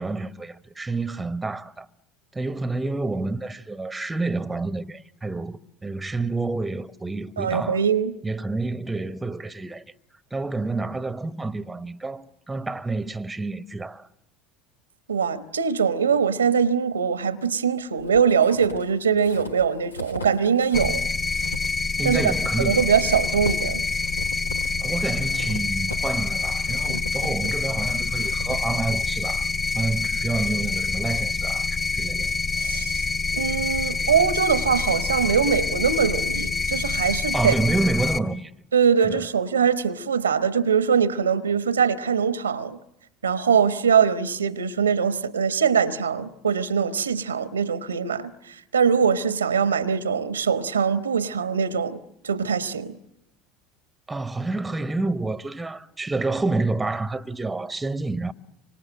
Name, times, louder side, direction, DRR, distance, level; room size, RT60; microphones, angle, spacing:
voice 1, 0.0-1.9 2.3-7.8 8.2-9.9 10.3-14.1 22.0-22.9 24.8-29.5 29.7-32.3 37.3-38.5 39.0-39.3 54.1-58.3, right 3 dB, 10° right, 1.0 m, -28 dB
voice 2, 7.4-8.2 15.1-21.0 22.0-22.2 22.6-23.8 32.6-33.0 33.3-37.5 38.7-42.8 43.2-52.0 52.2-53.0, right 6 dB, 85° right, 1.0 m, -22 dB
sound 1, 18.0-21.0 21.3-29.4, equal, 85° left, 1.1 m, -38 dB
sound 2, 20.7-38.2, left 4 dB, 30° left, 2.0 m, -26 dB
26.5 x 25.0 x 7.6 m
figure-of-eight pair, 70°, 0 cm